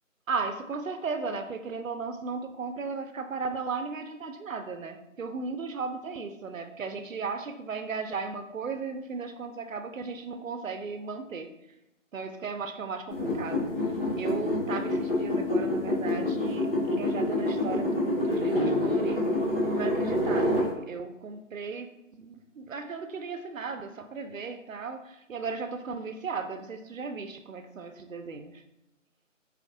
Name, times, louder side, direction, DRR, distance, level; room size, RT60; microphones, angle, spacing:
voice 1, 0.3-11.5 12.1-19.2 19.6-28.6, right 4 dB, 80° right, 8 dB, 0.6 m, -36 dB
sound 1, 13.1-20.7, left 1 dB, 45° left, 1.1 m, -27 dB
4.1 x 2.5 x 2.6 m, 0.86 s
figure-of-eight pair, 180°, 39 cm